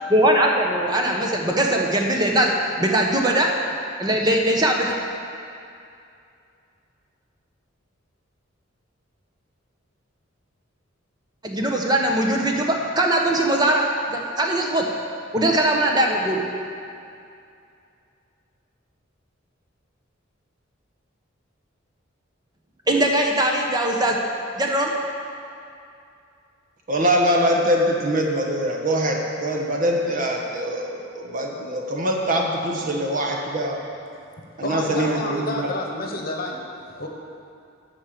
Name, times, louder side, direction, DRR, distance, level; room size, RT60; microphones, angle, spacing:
voice 1, 0.1-2.5 2.8-3.5 4.0-5.0 11.4-13.8 14.1-14.8 15.3-16.5 22.9-24.2 24.6-24.9, right 1 dB, 20° right, 0 dB, 0.9 m, -20 dB
voice 2, 26.9-33.8 34.6-35.7, equal, 45° right, 0 dB, 1.2 m, -23 dB
voice 3, 34.6-36.6 36.9-37.1, left 2 dB, 50° left, 1 dB, 1.1 m, -29 dB
12.0 x 4.5 x 7.5 m, 2.5 s
head